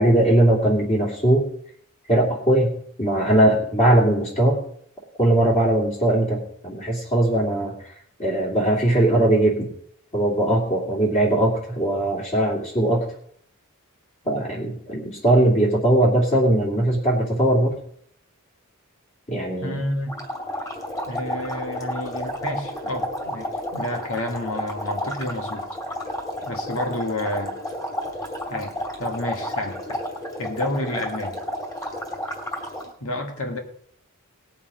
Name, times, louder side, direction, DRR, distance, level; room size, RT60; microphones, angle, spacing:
voice 1, 0.0-1.4 2.1-2.7 3.0-4.6 5.2-7.7 8.2-9.7 10.1-13.1 14.2-17.7 19.3-19.8, right 1 dB, 30° left, -3 dB, 2.7 m, -20 dB
voice 2, 19.6-20.2 21.1-25.7 26.4-27.5 28.5-30.0 30.4-31.4 33.0-33.6, left 1 dB, 65° left, 3 dB, 2.0 m, -30 dB
sound 1, 20.1-32.9, left 1 dB, 15° left, 2.5 m, -31 dB
19.0 x 7.1 x 5.1 m, 0.64 s
head